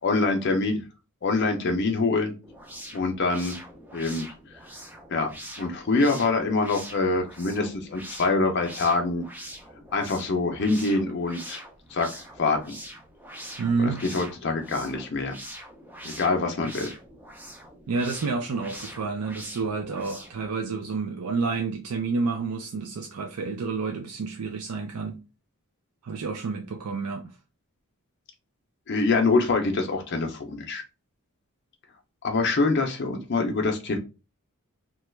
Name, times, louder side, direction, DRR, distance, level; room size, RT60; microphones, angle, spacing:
voice 1, 0.0-0.8 1.2-2.3 2.9-3.6 3.9-4.2 5.1-5.3 5.6-9.2 9.9-11.6 11.9-12.6 13.8-15.4 16.0-16.9 28.9-30.8 32.2-34.0, left 3 dB, 50° left, 0.5 m, -25 dB
sound 1, 2.4-20.5, right 1 dB, 10° right, 0.4 m, -43 dB
voice 2, 13.6-14.0 17.9-25.2 26.0-27.4, right 4 dB, 90° right, 0.4 m, -29 dB
3.0 x 2.3 x 3.1 m
head